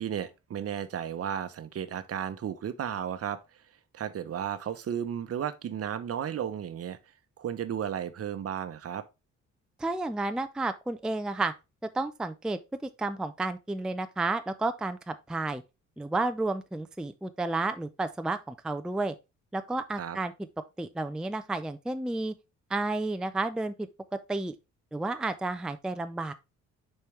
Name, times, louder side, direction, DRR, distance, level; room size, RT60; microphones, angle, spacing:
voice 1, 0.0-3.4 3.9-7.0 7.4-9.0 20.0-20.2, right 9 dB, 50° right, 0.8 m, -34 dB
voice 2, 9.8-11.5 11.9-15.6 16.0-19.1 19.5-20.3 20.8-22.3 22.7-23.9 24.3-24.5 24.9-26.3, right 2 dB, 5° right, 0.4 m, -31 dB
6.8 x 4.5 x 3.2 m
cardioid pair, 90°, 30 cm